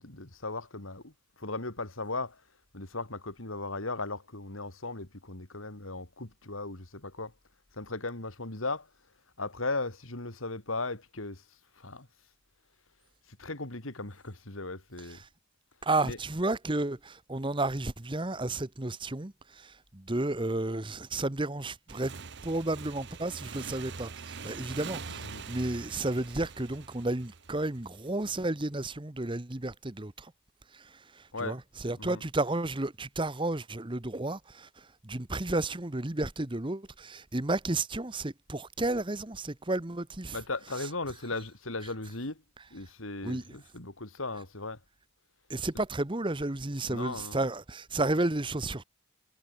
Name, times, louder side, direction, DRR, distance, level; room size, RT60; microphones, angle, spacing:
voice 1, 0.0-2.4 2.7-7.3 7.7-8.9 9.4-11.4 11.8-12.1 13.4-15.2 16.0-16.3 25.1-25.4 31.3-31.6 32.0-32.2 40.3-42.4 42.7-44.8 46.9-47.5, left 3 dB, 80° left, 3.5 m, -37 dB
voice 2, 15.8-22.1 22.4-30.3 30.7-40.4 43.2-43.4 45.5-48.8, right 2 dB, 25° right, 1.1 m, -32 dB
Motorcycle / Engine, 21.9-28.2, right 5 dB, 55° right, 1.0 m, -43 dB
head